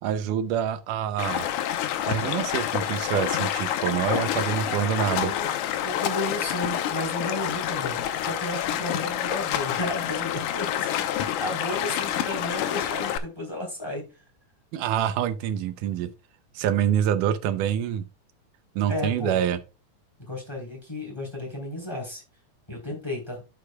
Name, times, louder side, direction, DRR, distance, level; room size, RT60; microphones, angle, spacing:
voice 1, 0.0-1.5 2.1-5.3 14.7-16.1 16.6-18.0 18.8-19.6, right 10 dB, 85° right, 2.2 m, -26 dB
Stream, 1.2-13.2, left 11 dB, 75° left, 2.1 m, -28 dB
voice 2, 4.7-5.5 5.8-14.0 18.9-19.4 20.3-22.2 22.7-23.4, left 1 dB, 10° left, 3.1 m, -33 dB
11.5 x 6.6 x 2.2 m
omnidirectional pair, 3.6 m